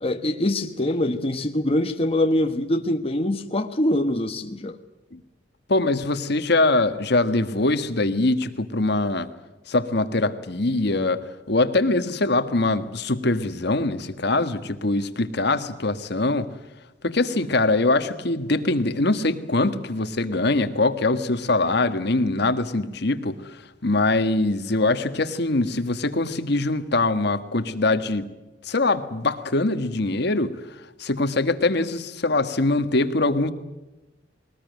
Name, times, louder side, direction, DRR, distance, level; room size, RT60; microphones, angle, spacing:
voice 1, 0.0-4.7, left 1 dB, 35° left, 6 dB, 1.2 m, -24 dB
voice 2, 5.7-9.3 9.7-11.2 11.5-16.5 17.0-28.3 28.6-30.5 31.0-33.5, left 2 dB, 65° left, 10 dB, 1.5 m, -23 dB
21.5 x 19.5 x 9.3 m, 1.0 s
head